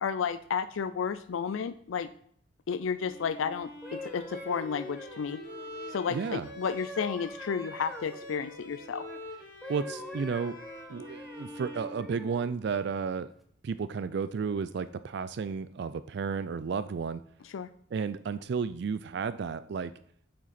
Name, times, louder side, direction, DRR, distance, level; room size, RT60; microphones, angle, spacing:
voice 1, 0.0-2.1 2.7-5.4 5.9-9.1 17.4-17.7, left 6 dB, 85° left, 13 dB, 0.4 m, -32 dB
Bowed string instrument, 3.0-12.7, left 1 dB, 45° left, 2.3 m, -46 dB
sound 1, 3.6-9.2 9.6-12.5 13.1-13.4, left 1 dB, ahead, 0.9 m, -45 dB
voice 2, 6.1-6.5 9.7-10.6 10.9-13.3 13.6-17.2 17.9-19.9, right 5 dB, 60° right, 14 dB, 0.4 m, -32 dB
9.1 x 7.6 x 4.2 m, 0.64 s
head